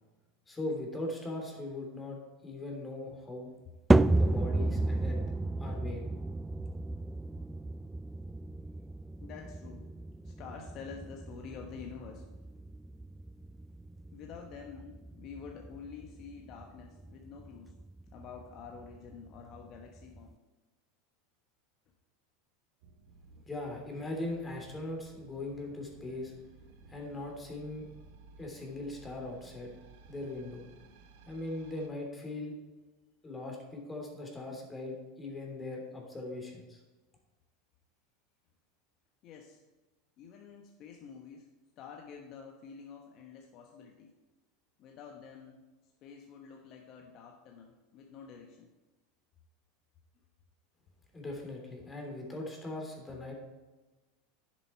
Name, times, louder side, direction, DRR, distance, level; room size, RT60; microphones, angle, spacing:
voice 1, 0.5-3.5 4.2-5.2 5.6-6.0 23.4-26.3 26.9-27.9 28.4-29.7 30.1-30.6 31.3-32.5 33.2-36.8 51.1-53.3, left 2 dB, 15° left, 0 dB, 3.2 m, -40 dB
sound 1, 3.9-20.3, right 2 dB, 10° right, 0.3 m, -33 dB
voice 2, 9.2-9.9 10.2-12.3 14.1-17.7 18.1-20.4 39.2-39.6 40.2-41.5 41.8-44.1 44.8-48.7, left 6 dB, 50° left, 1 dB, 1.2 m, -48 dB
sound 2, 22.8-31.9, right 3 dB, 65° right, 1.1 m, -57 dB
10.5 x 7.5 x 4.4 m, 1.2 s
hypercardioid pair, 90°, 0 cm